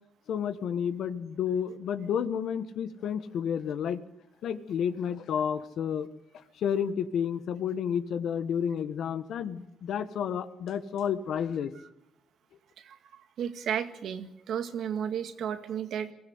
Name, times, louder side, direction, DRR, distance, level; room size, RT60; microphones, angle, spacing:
voice 1, 0.3-4.0 4.4-6.1 6.6-11.7, left 8 dB, 70° left, 12 dB, 1.4 m, -31 dB
voice 2, 12.8-16.1, right 8 dB, 70° right, 8 dB, 1.9 m, -33 dB
22.0 x 16.0 x 9.6 m, 0.86 s
cardioid pair, 90°, 0 cm